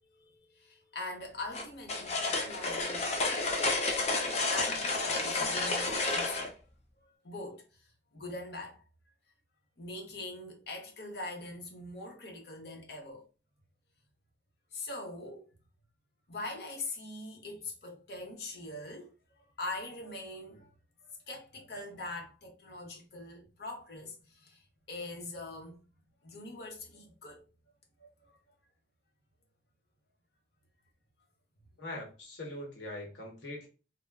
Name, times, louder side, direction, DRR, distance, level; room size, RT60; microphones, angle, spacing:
voice 1, 0.0-3.1 4.5-6.5 7.0-8.8 9.8-13.2 14.7-15.5 16.3-19.1 19.6-20.7 21.0-25.8 26.2-27.4 28.0-28.4, left 2 dB, 65° left, 0.9 m, -43 dB
sound 1, 1.5-6.5, left 3 dB, 35° left, 0.5 m, -31 dB
voice 2, 31.8-33.7, left 1 dB, 80° left, 1.0 m, -42 dB
3.3 x 2.1 x 2.3 m
head